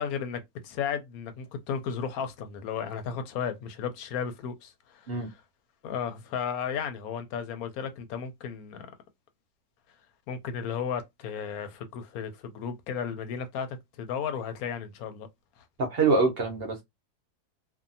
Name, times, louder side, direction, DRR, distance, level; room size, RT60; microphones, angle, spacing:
voice 1, 0.0-5.4 5.8-8.9 10.3-15.3, left 7 dB, 70° left, 1.0 m, -34 dB
voice 2, 15.8-16.8, right 3 dB, 50° right, 0.8 m, -25 dB
2.6 x 2.4 x 2.6 m
omnidirectional pair, 1.7 m